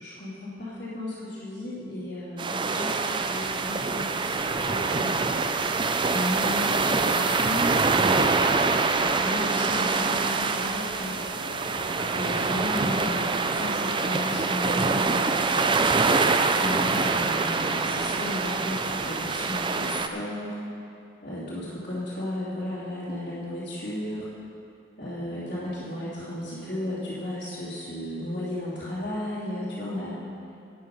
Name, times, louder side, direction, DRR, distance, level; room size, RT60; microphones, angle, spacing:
voice 1, 0.0-5.3 6.0-15.8 16.5-20.6 21.2-24.3 25.0-30.2, left 1 dB, 45° left, -14 dB, 2.8 m, -34 dB
sound 1, 2.4-20.1, right 4 dB, 25° right, 0.4 m, -25 dB
Brass instrument, 9.9-14.4, left 2 dB, 75° left, 0.7 m, -45 dB
12.0 x 9.5 x 5.4 m, 2.6 s
head